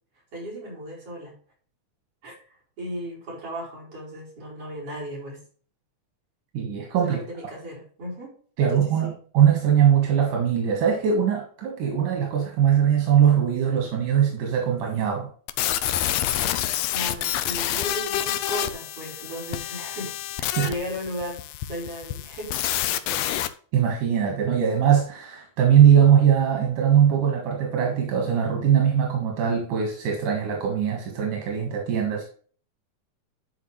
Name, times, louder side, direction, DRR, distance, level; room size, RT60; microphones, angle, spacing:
voice 1, 0.3-1.3 2.2-2.3 2.8-5.4 7.0-8.3 8.7-9.2 16.9-22.5 22.8-23.4, equal, 45° right, -4 dB, 5.7 m, -36 dB
voice 2, 6.5-7.2 8.6-15.3 20.6-20.7 23.7-32.2, right 9 dB, 85° right, 1 dB, 3.2 m, -21 dB
sound 1, 15.5-23.5, left 12 dB, 75° left, 1.7 m, -28 dB
12.5 x 4.9 x 3.2 m, 0.43 s
omnidirectional pair, 3.5 m